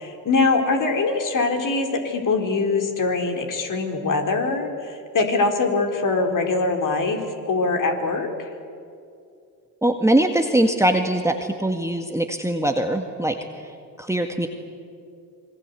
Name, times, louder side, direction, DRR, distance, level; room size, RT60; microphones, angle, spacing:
voice 1, 0.0-8.5, left 3 dB, 40° left, 4 dB, 4.3 m, -23 dB
voice 2, 9.8-13.7 14.0-14.5, right 1 dB, 5° right, 4 dB, 1.8 m, -22 dB
26.5 x 22.5 x 8.3 m, 2.4 s
hypercardioid pair, 65°, 49 cm